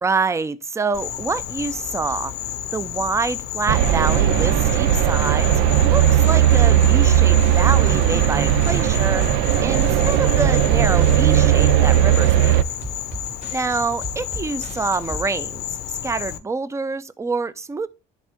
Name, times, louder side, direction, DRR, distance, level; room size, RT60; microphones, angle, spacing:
voice 1, 0.0-5.5 5.8-9.3 9.6-12.6 13.5-17.9, right 4 dB, 15° right, 0.5 m, -26 dB
Insect, 0.9-16.4, left 11 dB, 70° left, 0.7 m, -31 dB
sound 1, 3.7-12.6, right 11 dB, 90° right, 0.4 m, -17 dB
sound 2, 5.6-15.2, right 1 dB, 40° right, 2.4 m, -36 dB
10.5 x 3.7 x 3.5 m
cardioid pair, 110°, 17 cm